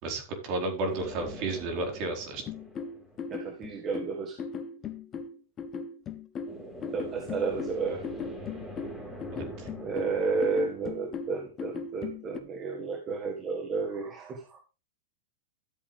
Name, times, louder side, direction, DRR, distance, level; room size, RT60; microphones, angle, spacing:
voice 1, 0.0-2.4 9.4-9.7, right 2 dB, 45° right, 3 dB, 4.2 m, -32 dB
sound 1, 0.9-3.7 6.5-11.9, equal, 10° right, 4.1 m, -44 dB
sound 2, 2.5-12.4, left 5 dB, 30° left, 1.4 m, -38 dB
voice 2, 3.3-4.4 6.9-8.0 9.8-14.6, right 4 dB, 30° right, 4 dB, 1.7 m, -32 dB
12.5 x 8.3 x 3.4 m, 0.32 s
hypercardioid pair, 120°, 0 cm